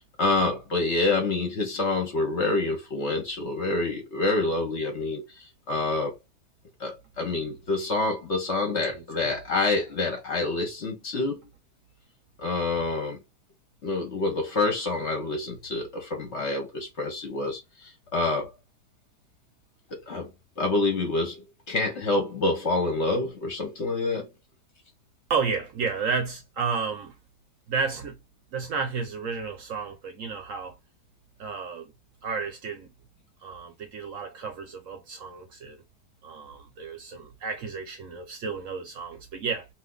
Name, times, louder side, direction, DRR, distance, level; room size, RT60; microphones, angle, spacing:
voice 1, 0.2-6.2 6.8-11.4 12.4-13.2 13.8-18.5 19.9-20.3 20.6-24.3, left 2 dB, 50° left, 0.9 m, -27 dB
voice 2, 8.9-9.3 25.3-27.1 27.7-28.2 28.5-30.8 31.4-31.9 32.2-32.9 33.4-35.8 36.2-39.7, right 5 dB, 65° right, 0.9 m, -32 dB
2.6 x 2.5 x 3.7 m
omnidirectional pair, 1.8 m